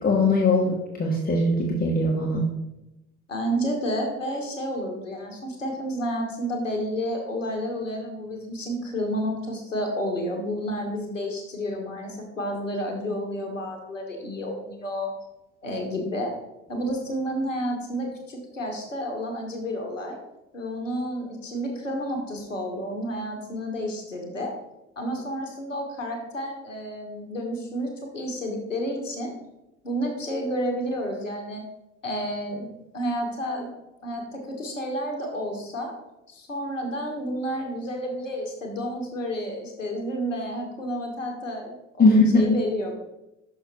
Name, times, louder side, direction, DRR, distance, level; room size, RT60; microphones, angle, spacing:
voice 1, 0.0-2.4 42.0-42.6, left 2 dB, 25° left, -1 dB, 1.1 m, -20 dB
voice 2, 3.3-15.1 15.6-16.3 16.7-20.2 20.5-24.5 25.0-29.3 29.8-31.6 32.0-32.7 32.9-33.7 34.0-35.9 36.3-42.9, equal, 85° left, 2 dB, 1.1 m, -30 dB
6.1 x 5.7 x 4.1 m, 0.91 s
figure-of-eight pair, 55°, 37 cm